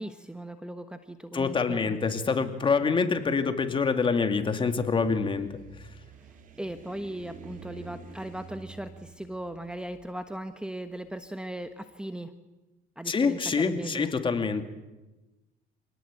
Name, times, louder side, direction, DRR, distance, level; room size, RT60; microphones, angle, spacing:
voice 1, 0.0-2.0 6.6-12.3 13.0-14.1, right 1 dB, 5° right, 9 dB, 1.2 m, -38 dB
voice 2, 1.3-5.6 13.1-14.6, left 5 dB, 30° left, 7 dB, 2.6 m, -26 dB
sound 1, 4.5-11.7, right 6 dB, 50° right, 3.2 m, -49 dB
26.5 x 19.0 x 9.0 m, 1.1 s
cardioid pair, 110°, 17 cm